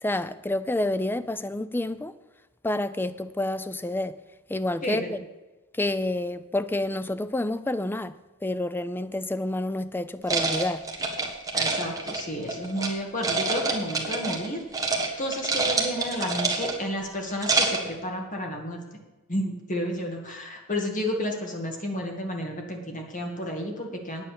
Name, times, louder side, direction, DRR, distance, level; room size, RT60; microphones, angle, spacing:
voice 1, 0.0-2.1 2.6-4.2 4.5-5.2 5.7-10.8, left 1 dB, 10° left, 0.4 m, -29 dB
sound 1, 10.3-12.9 13.2-14.5 14.7-15.1 15.3-16.9 17.3-17.9, right 3 dB, 15° right, 1.5 m, -27 dB
voice 2, 11.5-14.6 15.2-18.8 19.3-24.2, equal, 35° left, 2.2 m, -31 dB
9.3 x 8.9 x 6.8 m
head